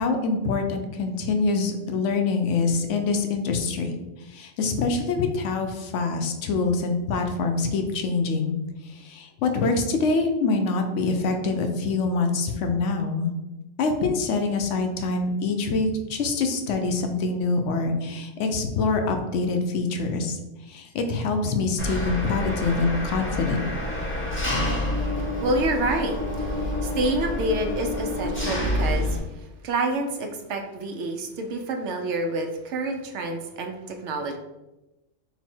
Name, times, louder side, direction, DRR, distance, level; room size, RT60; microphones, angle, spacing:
voice 1, 0.0-3.9 4.2-8.5 8.8-13.3 13.8-20.4 20.6-23.6, left 3 dB, 75° left, 5 dB, 0.9 m, -25 dB
Engine, 21.8-29.2, left 1 dB, 15° left, 0.5 m, -28 dB
voice 2, 25.2-29.2 29.6-34.4, right 2 dB, 70° right, 4 dB, 0.8 m, -28 dB
4.0 x 2.1 x 4.3 m, 1.0 s
omnidirectional pair, 1.3 m